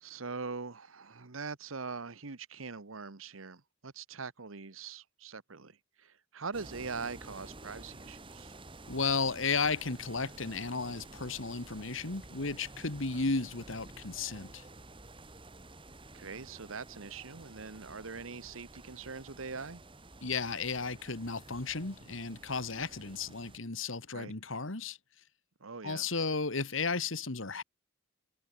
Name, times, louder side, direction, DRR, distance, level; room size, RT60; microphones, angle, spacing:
voice 1, 0.0-8.5 13.1-13.3 16.1-19.8 24.1-24.3 25.6-26.1, right 4 dB, 90° right, 1.3 m, -42 dB
sound 1, 6.5-23.6, right 2 dB, 25° right, 2.6 m, -51 dB
voice 2, 8.9-14.6 20.2-25.0 25.8-27.6, left 4 dB, 75° left, 1.9 m, -34 dB
head